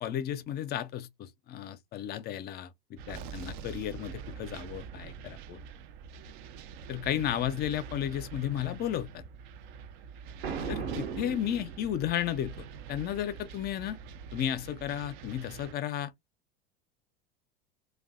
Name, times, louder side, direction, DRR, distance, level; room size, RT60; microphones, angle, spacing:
voice 1, 0.0-5.6 6.9-9.2 10.7-14.0 14.3-16.1, left 11 dB, 35° left, 0.4 m, -33 dB
sound 1, 3.0-15.7, right 6 dB, 55° right, 0.5 m, -45 dB
Boom, 10.4-12.3, right 6 dB, 80° right, 0.9 m, -37 dB
2.6 x 2.2 x 2.4 m
hypercardioid pair, 90°, 29 cm